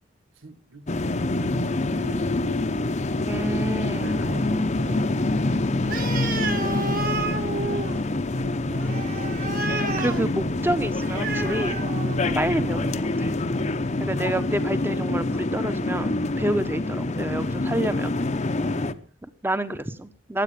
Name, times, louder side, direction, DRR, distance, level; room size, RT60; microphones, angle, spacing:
voice 1, 0.3-2.6 3.9-5.9 6.3-9.3 18.6-19.1, right 1 dB, 85° right, 1.4 m, -43 dB
sound 1, 0.9-18.9, left 2 dB, 35° left, 0.8 m, -26 dB
voice 2, 3.3-4.1 10.0-11.9 12.3-13.3 14.0-18.1 19.2-20.4, right 1 dB, 10° right, 1.0 m, -28 dB
Animal, 5.8-12.6, right 3 dB, 45° right, 1.9 m, -31 dB
15.5 x 10.5 x 6.7 m
head